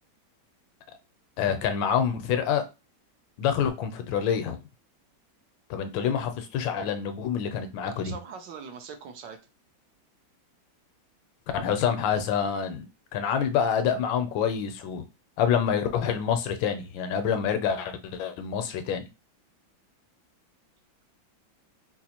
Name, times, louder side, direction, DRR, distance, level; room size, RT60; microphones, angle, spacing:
voice 1, 1.4-2.6 3.4-4.6 5.7-8.1 11.5-12.9 13.1-15.1 15.4-19.1, left 8 dB, 80° left, 1.3 m, -27 dB
voice 2, 7.8-9.4, right 6 dB, 75° right, 1.2 m, -42 dB
4.0 x 2.4 x 2.8 m
omnidirectional pair, 2.1 m